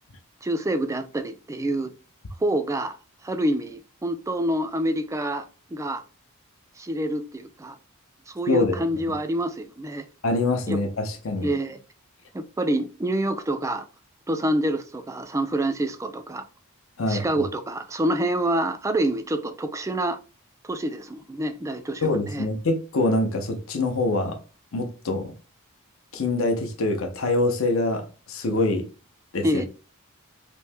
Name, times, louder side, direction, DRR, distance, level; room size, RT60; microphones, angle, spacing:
voice 1, 0.4-1.9 2.4-3.0 3.2-6.0 6.8-7.8 8.3-10.1 10.7-10.8 11.4-11.8 12.3-13.8 14.3-16.4 17.1-20.2 20.6-22.5 29.4-29.7, right 1 dB, 15° right, 0.3 m, -27 dB
voice 2, 8.5-8.8 10.2-11.5 17.0-17.4 22.0-24.4 24.7-25.3 26.1-28.9 29.3-29.6, left 2 dB, 65° left, 0.6 m, -25 dB
3.0 x 2.7 x 3.3 m
head